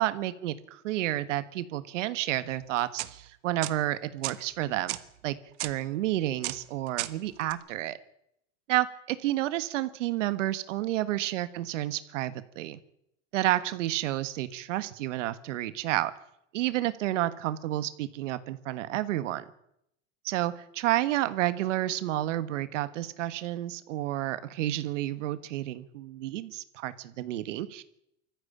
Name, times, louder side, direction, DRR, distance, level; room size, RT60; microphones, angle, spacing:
voice 1, 0.0-5.0 5.2-5.4 5.6-8.0 8.7-12.8 13.3-16.1 16.5-19.4 20.2-27.8, right 14 dB, 85° right, 13 dB, 1.5 m, -30 dB
sound 1, 2.8-3.2 3.6-3.7 4.2-4.4 4.9-5.0 5.6-5.7 6.4-6.6 6.9-7.1 7.4-7.5, right 19 dB, 70° right, 1.5 m, -33 dB
21.0 x 14.5 x 8.7 m, 0.79 s
supercardioid pair, 110°, 36 cm